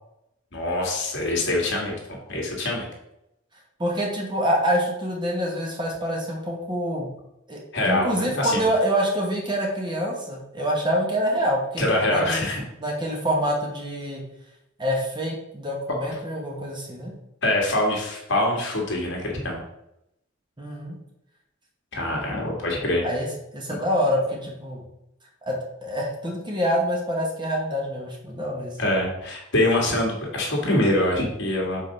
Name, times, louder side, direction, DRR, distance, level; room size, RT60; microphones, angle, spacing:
voice 1, 0.5-2.9 7.7-8.6 11.8-12.6 17.4-19.6 21.9-23.1 28.8-31.8, left 1 dB, 55° left, -1 dB, 1.7 m, -24 dB
voice 2, 3.8-7.1 7.5-12.4 12.8-14.2 14.8-17.1 20.6-21.0 23.0-23.3 23.5-24.8 25.4-28.8, equal, 20° right, 0 dB, 1.1 m, -26 dB
5.4 x 3.8 x 5.3 m, 0.85 s
head